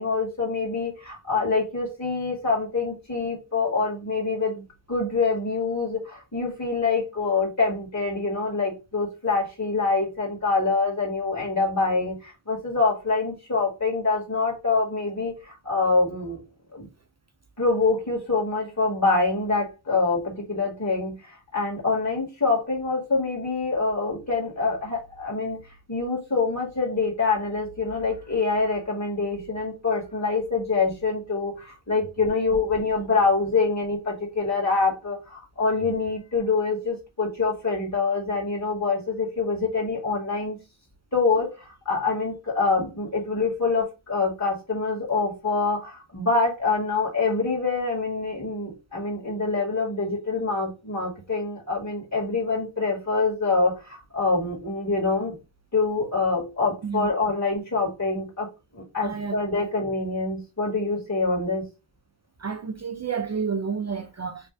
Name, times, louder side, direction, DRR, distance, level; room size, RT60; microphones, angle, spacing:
voice 1, 0.0-16.4 16.7-16.9 17.6-25.6 25.9-40.6 41.1-55.3 55.7-58.5 58.7-61.7, left 3 dB, 35° left, 2.0 m, -25 dB
voice 2, 59.0-59.7 62.4-64.5, right 6 dB, 35° right, 0.4 m, -30 dB
3.3 x 2.6 x 3.3 m
wide cardioid pair, 75°, 47 cm